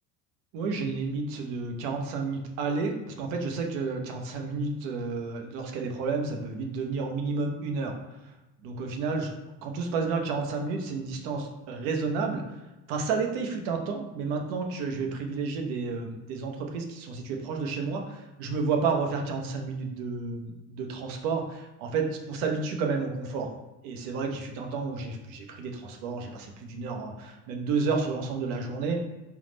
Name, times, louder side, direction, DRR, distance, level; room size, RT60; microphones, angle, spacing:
voice 1, 0.5-7.9 8.6-9.3 9.6-12.4 12.9-23.5 23.8-29.0, right 4 dB, 75° right, 2 dB, 0.8 m, -31 dB
3.6 x 2.4 x 3.8 m, 1.0 s
supercardioid pair, 90°, 38 cm